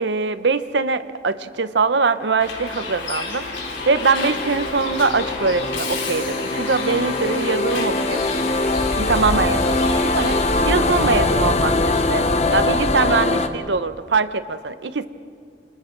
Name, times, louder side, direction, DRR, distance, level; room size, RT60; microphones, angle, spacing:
voice 1, 0.0-8.2 9.0-15.1, right 4 dB, 70° right, 12 dB, 0.8 m, -22 dB
Bus, 2.4-12.9, left 2 dB, 85° left, 3.6 m, -29 dB
sound 1, 2.8-13.5, left 2 dB, 40° left, 1.0 m, -23 dB
28.0 x 28.0 x 3.9 m, 2.2 s
head